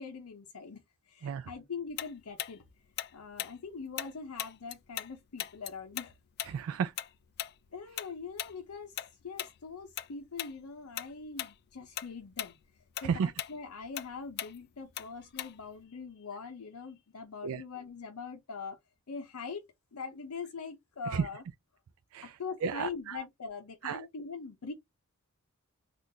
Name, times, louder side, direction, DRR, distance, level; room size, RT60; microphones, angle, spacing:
voice 1, 0.0-2.6 3.1-6.1 7.7-12.6 13.0-18.8 19.1-19.6 19.9-21.4 22.2-24.7, left 5 dB, 90° left, 0.6 m, -42 dB
Tick-tock, 2.0-5.1 5.4-10.1 10.4-10.6 11.0-11.5 11.8-15.8, left 12 dB, 50° left, 0.3 m, -39 dB
voice 2, 6.5-6.9 13.0-13.3 17.4-17.6 21.1-21.3 22.1-22.4 22.6-23.2 23.8-24.1, right 6 dB, 70° right, 0.3 m, -32 dB
3.6 x 2.4 x 2.7 m
head